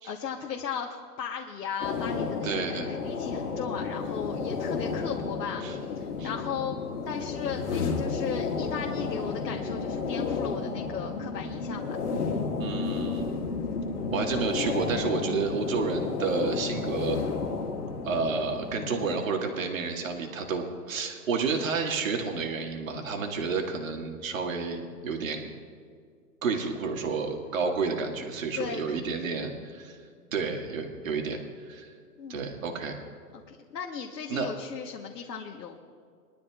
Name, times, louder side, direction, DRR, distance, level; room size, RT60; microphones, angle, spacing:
voice 1, 0.0-6.8 7.0-11.9 27.0-27.3 28.6-29.4 32.2-32.5 33.3-35.8, left 7 dB, 90° left, 1 dB, 1.5 m, -37 dB
sound 1, 1.8-19.2, left 4 dB, 65° left, 2.0 m, -32 dB
voice 2, 2.4-2.9 5.6-5.8 6.2-6.3 12.6-13.4 14.1-17.2 18.0-25.5 26.4-30.0 30.3-31.9 32.3-33.0 34.3-34.5, right 4 dB, 55° right, 2 dB, 2.2 m, -30 dB
22.5 x 12.5 x 2.5 m, 2.2 s
hypercardioid pair, 170°, 49 cm